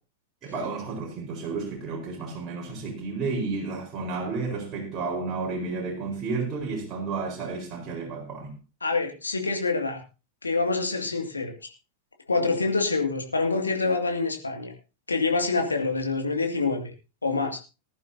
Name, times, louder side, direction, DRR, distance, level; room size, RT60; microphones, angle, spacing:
voice 1, 0.4-8.5, right 4 dB, 30° right, 4.4 m, -32 dB
voice 2, 8.8-10.0 10.4-11.7 12.3-14.7 15.1-16.9 17.2-17.6, left 3 dB, 80° left, 2.3 m, -26 dB
19.5 x 11.0 x 2.8 m
figure-of-eight pair, 90°, 0 cm